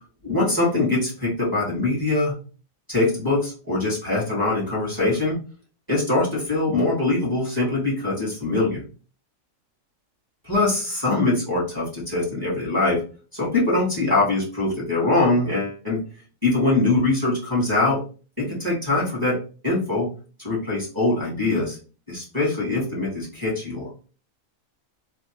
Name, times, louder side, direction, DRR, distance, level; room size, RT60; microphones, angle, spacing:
voice 1, 0.2-2.3 2.9-5.4 5.9-8.8 10.4-13.0 13.3-16.0 16.4-18.0 18.4-19.4 19.6-20.1 20.4-21.8 22.1-23.9, left 2 dB, 15° right, -7 dB, 1.8 m, -23 dB
3.3 x 3.0 x 2.9 m, 0.37 s
omnidirectional pair, 1.4 m